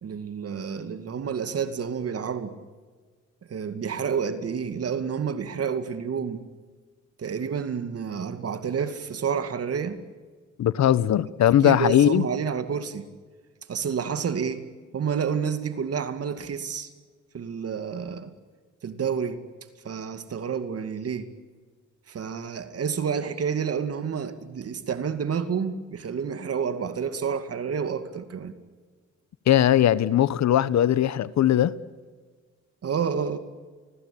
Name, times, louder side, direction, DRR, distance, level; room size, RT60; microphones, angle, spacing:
voice 1, 0.0-2.6 3.5-6.4 7.2-10.0 11.6-13.1 13.7-14.7 14.9-16.9 17.3-18.3 18.8-19.4 19.8-21.3 22.1-28.5 32.8-33.4, right 6 dB, 50° right, 2.4 m, -29 dB
voice 2, 10.6-12.3 29.5-31.7, left 11 dB, 65° left, 1.1 m, -20 dB
29.5 x 21.0 x 8.5 m
cardioid pair, 90°, 30 cm